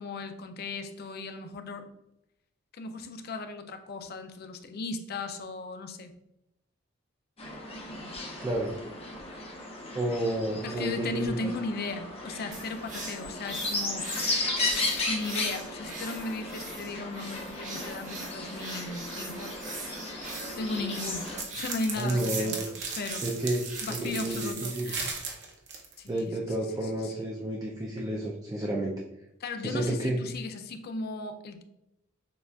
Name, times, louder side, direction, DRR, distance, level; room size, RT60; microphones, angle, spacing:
voice 1, 0.0-1.9 2.7-6.1 10.6-14.1 15.0-19.5 20.6-23.2 23.8-25.1 26.0-26.4 26.8-27.2 29.4-31.6, left 3 dB, 50° left, 7 dB, 0.4 m, -36 dB
sound 1, 7.4-21.4, left 2 dB, 30° left, 0.8 m, -35 dB
voice 2, 8.4-8.7 9.9-11.3 22.0-22.7 23.2-23.6 23.9-24.9 26.1-28.9 29.6-30.2, right 1 dB, 20° right, -1 dB, 0.4 m, -30 dB
sound 2, 12.5-24.5, right 3 dB, 40° right, 1.1 m, -42 dB
sound 3, 21.1-26.2, right 5 dB, 60° right, 0.8 m, -37 dB
6.7 x 2.4 x 2.3 m, 0.85 s
head